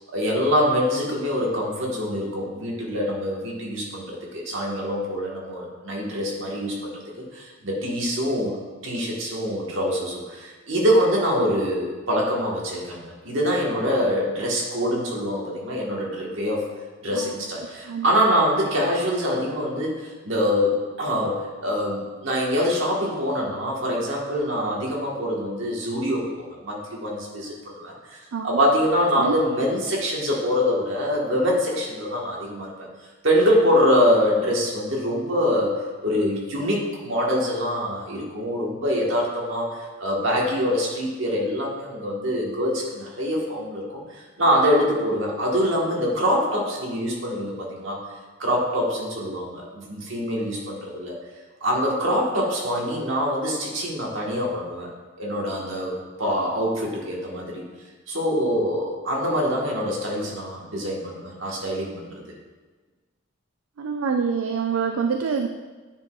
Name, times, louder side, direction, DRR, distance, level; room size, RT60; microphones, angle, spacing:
voice 1, 0.1-16.6 17.0-32.7 33.2-48.0 48.4-51.2 51.6-54.9 55.2-57.6 58.1-62.2, equal, 65° right, -2 dB, 1.4 m, -24 dB
voice 2, 63.8-65.5, right 6 dB, 80° right, 5 dB, 0.4 m, -26 dB
9.3 x 4.8 x 2.4 m, 1.3 s
head